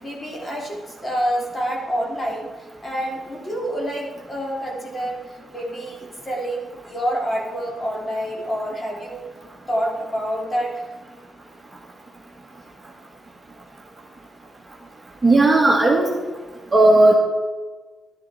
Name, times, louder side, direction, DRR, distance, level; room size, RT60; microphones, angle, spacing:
voice 1, 0.0-2.5 2.8-5.2 5.5-9.2 9.7-10.8, equal, 30° left, -1 dB, 3.1 m, -27 dB
voice 2, 15.2-16.1 16.7-17.2, right 2 dB, 15° right, -2 dB, 2.1 m, -14 dB
12.0 x 10.5 x 4.3 m, 1.3 s
cardioid pair, 95°, 0 cm